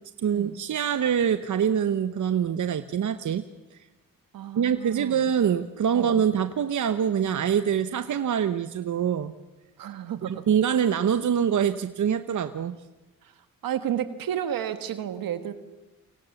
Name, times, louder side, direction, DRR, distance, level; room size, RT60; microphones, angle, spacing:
voice 1, 0.2-3.4 3.7-3.9 4.5-9.3 10.2-12.8, right 8 dB, 55° right, 11 dB, 1.0 m, -25 dB
voice 2, 4.3-5.2 5.9-6.2 9.8-10.5 13.2-15.5, right 10 dB, 75° right, 10 dB, 1.6 m, -32 dB
28.5 x 25.5 x 7.1 m, 1.1 s
cardioid pair, 70°, 35 cm